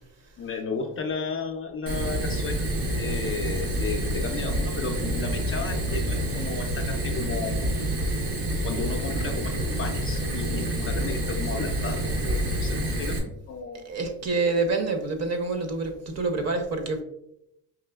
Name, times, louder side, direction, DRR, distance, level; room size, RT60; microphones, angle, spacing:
voice 1, 0.4-2.7 3.0-7.7 8.6-13.9, left 4 dB, 35° left, 3 dB, 0.4 m, -34 dB
Fire, 1.9-13.2, right 1 dB, 75° right, 1.1 m, -28 dB
voice 2, 13.8-17.0, right 3 dB, 40° right, 6 dB, 0.7 m, -27 dB
4.9 x 2.9 x 2.3 m, 0.80 s
cardioid pair, 95°, 42 cm